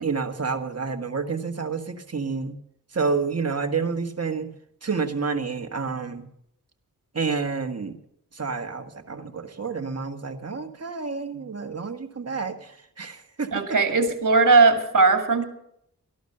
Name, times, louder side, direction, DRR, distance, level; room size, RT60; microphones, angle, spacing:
voice 1, 0.0-2.6 2.9-4.5 4.8-6.3 7.1-8.0 8.3-13.6 14.5-14.6, right 5 dB, 45° right, 6 dB, 1.6 m, -29 dB
voice 2, 13.5-15.4, right 3 dB, 60° right, 5 dB, 2.4 m, -18 dB
14.0 x 11.5 x 6.6 m, 0.73 s
cardioid pair, 60°, 35 cm